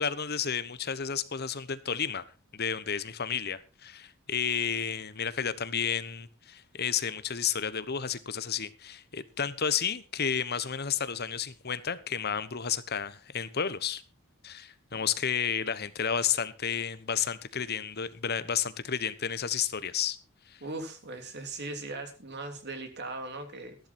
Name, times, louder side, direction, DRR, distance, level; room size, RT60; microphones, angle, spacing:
voice 1, 0.0-2.2 2.5-14.0 14.4-20.2 20.5-20.6, left 7 dB, 50° left, 1.1 m, -31 dB
voice 2, 20.6-23.8, right 2 dB, 55° right, 3.1 m, -39 dB
14.5 x 12.0 x 4.4 m
head